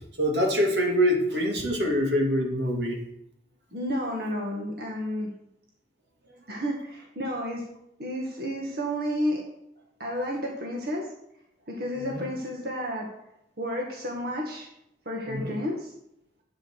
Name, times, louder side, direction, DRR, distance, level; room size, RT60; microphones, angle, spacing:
voice 1, 0.2-3.0 12.0-12.2 15.3-15.6, equal, 80° right, 1 dB, 2.9 m, -25 dB
voice 2, 3.7-5.3 6.5-7.6 8.0-9.4 10.0-11.1 11.7-13.1 13.6-14.7 15.1-15.9, equal, 60° right, -1 dB, 2.1 m, -31 dB
11.5 x 8.8 x 6.4 m, 0.78 s
head